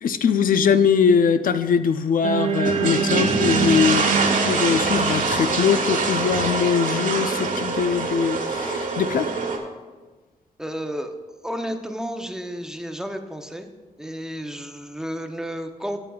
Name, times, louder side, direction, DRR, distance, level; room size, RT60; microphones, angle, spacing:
voice 1, 0.0-9.3, left 6 dB, 75° left, 10 dB, 0.5 m, -21 dB
sound 1, 2.2-6.6, right 5 dB, 45° right, 0.5 m, -26 dB
sound 2, 2.5-9.6, right 4 dB, 65° right, 1.3 m, -24 dB
voice 2, 10.6-11.1 11.4-13.7 14.0-16.0, equal, 5° right, 5 dB, 0.6 m, -32 dB
14.0 x 7.6 x 2.3 m, 1.3 s
wide cardioid pair, 120°, 14 cm